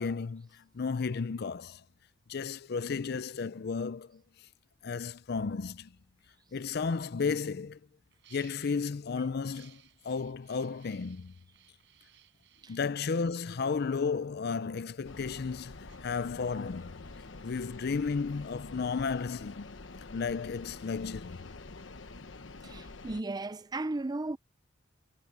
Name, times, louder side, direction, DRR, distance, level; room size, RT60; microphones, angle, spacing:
voice 1, 0.0-1.8 2.3-4.2 4.8-5.9 6.5-7.8 8.3-11.3 12.7-17.0 17.4-19.8 20.1-21.5, left 5 dB, 55° left, 0.5 m, -33 dB
sound 1, 7.6-7.7 8.1-8.9 9.4-14.6 15.1-20.9, right 11 dB, 70° right, 4.7 m, -63 dB
sound 2, 15.0-23.2, left 3 dB, 75° left, 1.1 m, -47 dB
voice 2, 22.6-24.4, right 2 dB, 20° right, 0.6 m, -35 dB
head